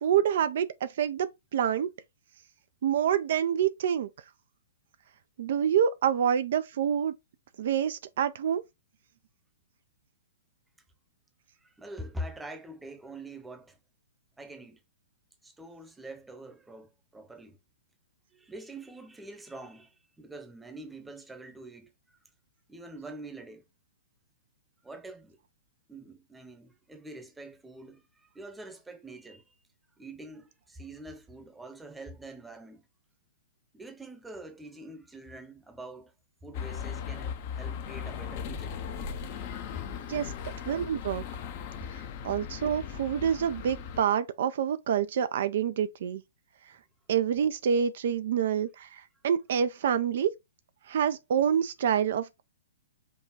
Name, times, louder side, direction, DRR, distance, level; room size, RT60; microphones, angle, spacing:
voice 1, 0.0-1.9 2.8-4.1 5.4-7.1 7.6-8.6 40.1-40.3 40.7-41.2 42.2-46.2 47.1-50.3 50.9-52.4, right 8 dB, 55° right, 0.4 m, -27 dB
voice 2, 11.6-13.8 14.4-14.8 15.4-17.6 18.3-22.2 22.7-23.6 24.8-25.4 25.9-29.4 30.0-32.9 33.7-36.1 36.4-38.8 39.8-39.9, right 1 dB, 5° right, 0.8 m, -45 dB
sound 1, 36.5-44.0, left 7 dB, 45° left, 0.7 m, -38 dB
5.3 x 2.3 x 3.8 m
figure-of-eight pair, 115°, 0 cm